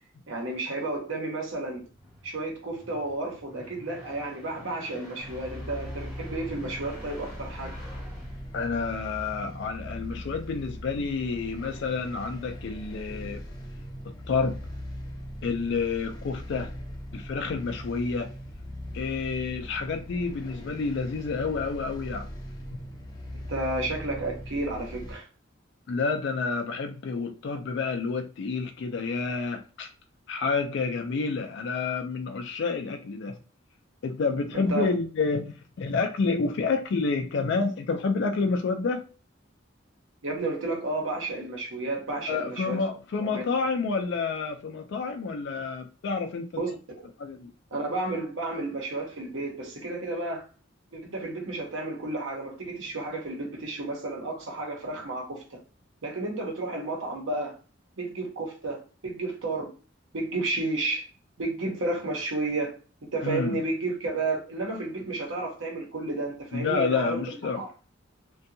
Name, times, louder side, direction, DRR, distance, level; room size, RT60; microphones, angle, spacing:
voice 1, 0.3-1.8 2.2-7.7 23.3-25.3 34.5-34.9 40.2-42.8 43.2-43.4 46.5-46.7 47.0-47.1 47.7-50.4 50.9-55.6 56.0-57.6 58.0-59.7 60.1-61.0 61.4-62.8 63.0-67.7, right 2 dB, 90° right, 0.8 m, -32 dB
sound 1, 1.7-9.2, equal, 5° right, 1.3 m, -48 dB
sound 2, 5.2-25.1, equal, 20° left, 0.6 m, -40 dB
voice 2, 8.5-13.4 14.3-14.6 15.4-16.7 17.1-18.3 18.9-22.3 25.9-29.9 30.3-33.4 34.0-39.0 42.3-46.5 47.2-47.5 63.2-63.6 66.5-67.6, left 4 dB, 65° left, 0.3 m, -29 dB
2.6 x 2.2 x 2.6 m
head